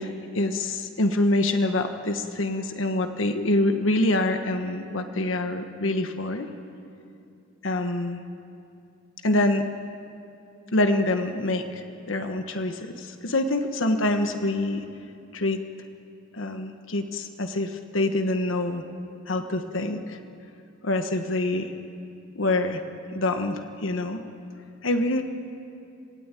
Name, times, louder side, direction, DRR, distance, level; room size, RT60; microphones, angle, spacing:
voice 1, 0.0-6.5 7.6-8.2 9.2-9.7 10.7-14.8 15.3-15.6 16.3-18.8 19.3-20.2 20.8-21.7 22.3-22.8 23.1-24.2 24.8-25.2, left 2 dB, 75° left, 6 dB, 1.3 m, -25 dB
26.5 x 17.0 x 9.1 m, 2.7 s
head